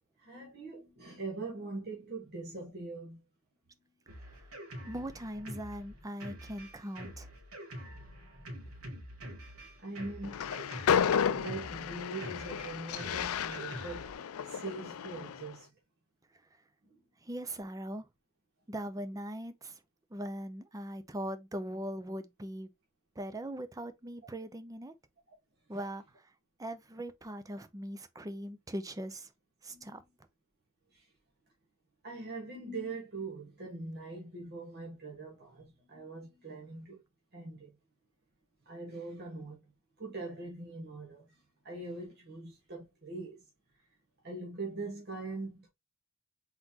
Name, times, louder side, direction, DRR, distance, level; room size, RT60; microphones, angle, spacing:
voice 1, 0.2-3.2 8.6-8.7 9.8-10.6 11.3-14.2 14.4-15.7 29.7-30.0 30.9-31.1 32.0-37.0 37.3-37.7 38.6-39.7 40.0-43.4 44.2-45.7, right 3 dB, 50° right, 1.4 m, -42 dB
Drum kit, 4.1-14.1, equal, 80° right, 2.2 m, -46 dB
voice 2, 4.8-7.3 17.2-18.1 18.7-19.8 20.1-22.7 23.2-24.9 25.7-26.3 26.6-29.3 29.6-30.0, right 1 dB, 15° right, 0.5 m, -40 dB
Train, 10.2-15.5, left 7 dB, 80° left, 0.4 m, -32 dB
4.0 x 4.0 x 2.8 m
head